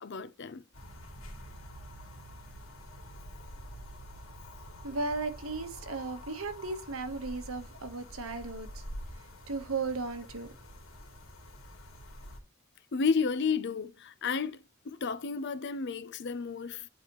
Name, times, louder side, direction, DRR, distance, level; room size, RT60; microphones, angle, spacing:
voice 1, 0.0-0.6 12.9-16.9, left 5 dB, 55° left, 0.6 m, -32 dB
sound 1, 0.7-12.4, equal, 85° left, 2.2 m, -47 dB
voice 2, 4.8-8.8 9.1-10.5, right 3 dB, 85° right, 1.2 m, -36 dB
9.7 x 4.2 x 3.0 m
head